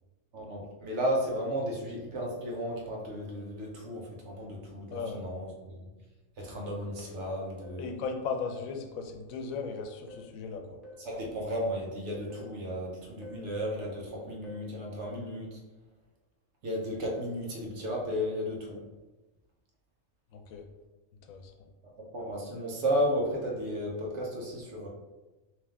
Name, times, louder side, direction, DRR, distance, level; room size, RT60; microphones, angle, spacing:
voice 1, 0.3-5.9 6.4-8.0 11.0-15.6 16.6-18.9 22.1-24.9, equal, 60° right, -1 dB, 1.1 m, -34 dB
voice 2, 4.9-5.2 7.8-10.8 20.3-20.7 21.3-21.5, left 5 dB, 85° left, 5 dB, 1.0 m, -36 dB
sound 1, 7.6-7.9 8.4-8.7 10.1-10.4 10.8-11.1 12.3-12.6 13.2-13.5 14.4-14.8 17.0-17.3 17.8-18.0, left 2 dB, ahead, 0.5 m, -50 dB
3.4 x 3.1 x 3.4 m, 1.1 s
omnidirectional pair, 1.4 m